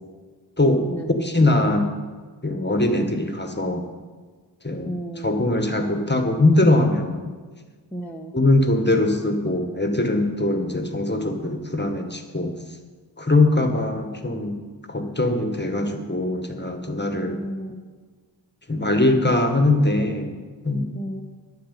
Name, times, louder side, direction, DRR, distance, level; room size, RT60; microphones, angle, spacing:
voice 1, 1.2-1.9 2.4-3.8 4.6-7.3 8.3-12.5 13.2-14.6 14.9-17.4 18.7-20.9, left 2 dB, 25° left, 5 dB, 1.7 m, -21 dB
voice 2, 4.8-5.3 7.9-8.3 17.3-17.8 20.9-21.2, right 1 dB, 5° left, -1 dB, 1.3 m, -33 dB
11.0 x 8.0 x 8.4 m, 1.5 s
wide cardioid pair, 60°, 43 cm